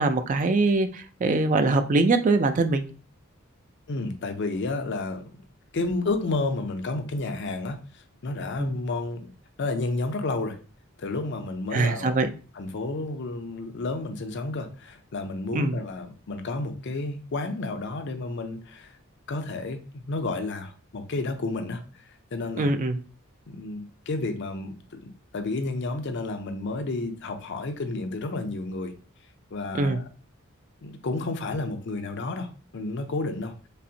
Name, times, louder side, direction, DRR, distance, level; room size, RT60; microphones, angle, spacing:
voice 1, 0.0-2.8 8.6-8.7 11.7-12.3 15.5-15.8 22.6-23.0 29.7-30.0, right 3 dB, 40° right, 0.4 m, -23 dB
voice 2, 3.9-5.3 5.7-9.3 9.6-10.6 11.0-12.2 12.5-18.9 19.3-21.8 22.3-22.7 23.5-28.9 29.5-30.1 30.8-33.6, left 2 dB, 55° left, 0.5 m, -31 dB
5.3 x 2.1 x 2.7 m
head